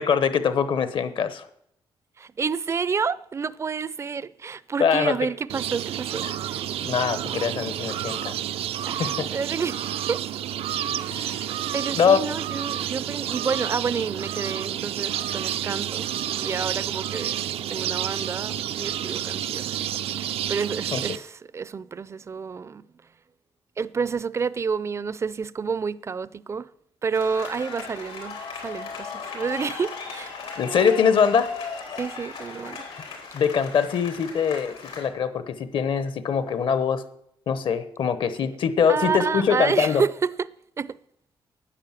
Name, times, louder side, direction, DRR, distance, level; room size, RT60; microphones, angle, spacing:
voice 1, 0.0-1.4 4.8-5.1 6.2-6.3 6.8-8.3 9.0-9.3 11.1-11.5 12.0-12.2 20.9-21.0 30.6-31.5 33.3-37.0 37.5-40.0, left 6 dB, 60° left, 1.0 m, -23 dB
voice 2, 2.2-6.6 8.9-10.2 10.9-11.4 11.7-17.4 17.7-19.9 20.2-22.8 23.8-26.7 27.0-28.4 28.6-30.3 32.0-32.9 38.4-38.6 38.9-41.0, right 5 dB, 30° right, 0.4 m, -29 dB
sound 1, 5.5-21.2, right 11 dB, 85° right, 0.5 m, -30 dB
sound 2, 27.1-35.1, left 4 dB, 90° left, 4.0 m, -37 dB
10.0 x 9.4 x 7.4 m
wide cardioid pair, 150°, 10 cm